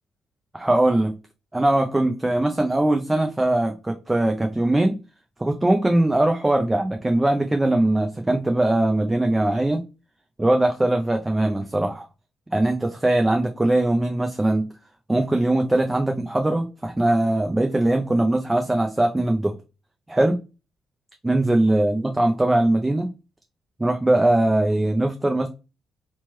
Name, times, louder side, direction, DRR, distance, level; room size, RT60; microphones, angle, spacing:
voice 1, 0.5-1.2 1.5-5.0 5.4-9.8 10.4-12.1 12.5-14.7 15.1-19.5 20.1-20.4 21.2-23.1 23.8-25.5, right 1 dB, 15° right, 0.4 m, -21 dB
3.0 x 2.1 x 3.0 m
cardioid pair, 90°, 0 cm